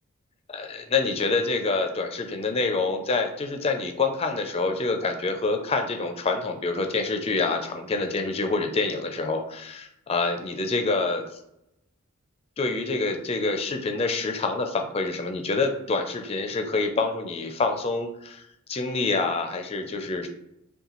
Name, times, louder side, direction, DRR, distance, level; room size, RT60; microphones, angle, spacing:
voice 1, 0.5-11.2 12.6-18.4 18.7-20.3, left 3 dB, 30° left, 5 dB, 0.4 m, -26 dB
5.5 x 2.2 x 3.0 m, 0.82 s
head